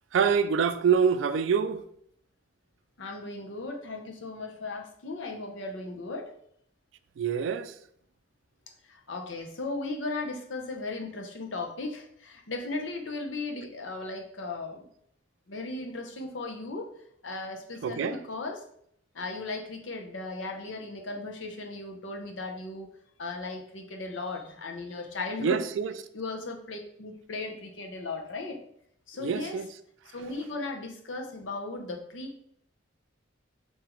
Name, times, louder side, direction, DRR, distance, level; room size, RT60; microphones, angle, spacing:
voice 1, 0.1-1.8 7.2-7.7 17.8-18.2 25.4-25.9 29.2-29.6, right 6 dB, 85° right, 0.3 m, -25 dB
voice 2, 3.0-6.3 8.9-14.9 15.5-16.9 17.2-18.6 19.1-22.9 23.2-25.6 26.1-28.6 29.1-29.6 30.1-32.4, left 3 dB, 90° left, 0.8 m, -36 dB
3.8 x 2.7 x 4.3 m
head